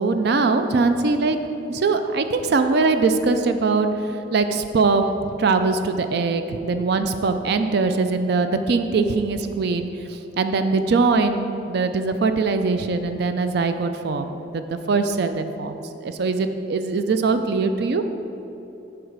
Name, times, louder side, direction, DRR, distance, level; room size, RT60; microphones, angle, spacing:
voice 1, 0.0-1.4 1.7-18.0, right 4 dB, 60° right, 8 dB, 0.4 m, -22 dB
7.8 x 4.8 x 6.6 m, 3.0 s
head